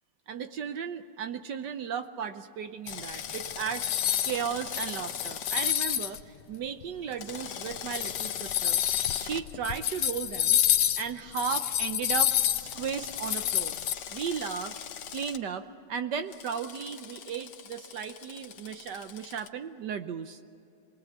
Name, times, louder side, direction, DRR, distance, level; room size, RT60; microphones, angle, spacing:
voice 1, 0.3-3.9 4.2-8.8 9.1-10.6 11.0-13.8 14.1-14.8 15.1-20.4, right 7 dB, 65° right, 9 dB, 1.2 m, -35 dB
sound 1, 2.9-4.4 4.7-6.2 6.8-6.9 7.7-13.9, left 11 dB, 85° left, 1.8 m, -28 dB
Drill, 2.9-5.8 7.1-9.4 12.6-15.4 16.3-19.5, left 8 dB, 60° left, 1.4 m, -41 dB
27.0 x 20.0 x 8.2 m, 2.7 s
omnidirectional pair, 2.4 m